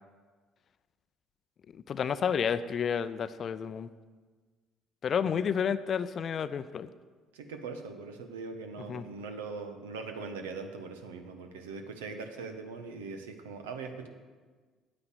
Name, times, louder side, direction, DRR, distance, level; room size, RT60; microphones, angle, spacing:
voice 1, 1.7-3.9 5.0-6.9 8.9-9.0, left 7 dB, 45° left, 14 dB, 0.6 m, -30 dB
voice 2, 7.3-14.1, right 4 dB, 75° right, 6 dB, 1.1 m, -41 dB
9.5 x 8.8 x 8.2 m, 1.4 s
figure-of-eight pair, 50°, 0 cm